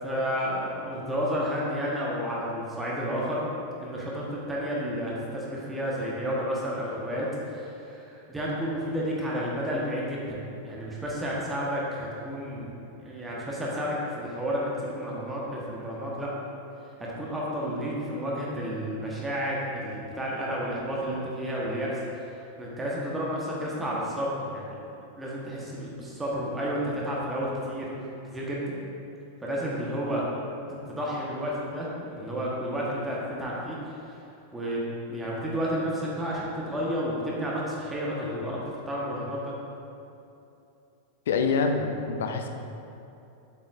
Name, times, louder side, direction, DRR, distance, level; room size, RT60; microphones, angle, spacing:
voice 1, 0.0-3.4 3.8-10.4 10.6-12.7 13.0-16.3 17.0-24.8 25.2-27.9 28.3-28.7 29.4-30.2 30.7-33.8 34.1-34.2 34.5-34.8 35.1-39.5, equal, 10° right, -5 dB, 1.3 m, -31 dB
voice 2, 41.3-42.5, left 4 dB, 60° left, 5 dB, 0.6 m, -26 dB
8.1 x 7.7 x 2.6 m, 2.7 s
figure-of-eight pair, 90°, 0 cm